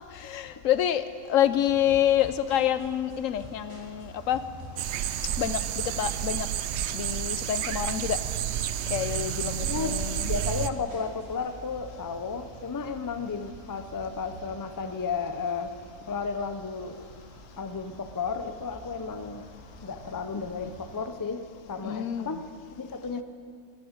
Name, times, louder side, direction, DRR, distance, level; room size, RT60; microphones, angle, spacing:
voice 1, 0.2-4.4 5.4-5.6 6.0-6.5 6.9-8.2 8.9-10.3 21.8-22.4, left 10 dB, 80° left, 13 dB, 1.0 m, -27 dB
sound 1, 1.4-21.0, right 1 dB, 25° right, 3.4 m, -48 dB
sound 2, 1.9-11.4, left 2 dB, 50° right, 3.6 m, -49 dB
sound 3, 4.8-10.7, right 11 dB, 65° right, 0.8 m, -30 dB
voice 2, 9.6-10.0 10.3-15.7 16.1-16.9 17.6-19.5 19.8-22.5 22.7-23.2, left 5 dB, 25° left, 9 dB, 0.5 m, -33 dB
14.5 x 11.0 x 8.9 m, 2.3 s
omnidirectional pair, 1.4 m